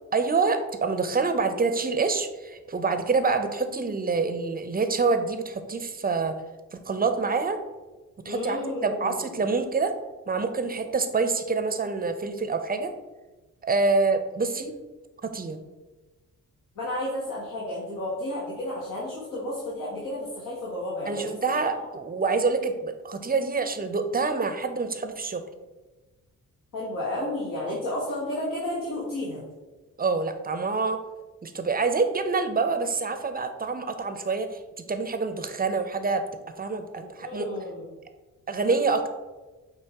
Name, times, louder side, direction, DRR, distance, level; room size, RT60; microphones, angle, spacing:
voice 1, 0.1-6.3 6.7-7.6 8.2-9.9 10.3-12.9 13.6-14.7 15.2-15.6 21.1-25.4 30.0-31.0 31.4-34.5 34.9-36.2 36.6-37.5 38.5-39.1, right 4 dB, 25° right, 8 dB, 0.6 m, -26 dB
voice 2, 8.3-9.5 16.7-21.4 26.7-29.4 37.2-37.8, left 1 dB, 65° left, -6 dB, 1.4 m, -32 dB
6.4 x 2.8 x 2.9 m, 1.2 s
supercardioid pair, 45°, 34 cm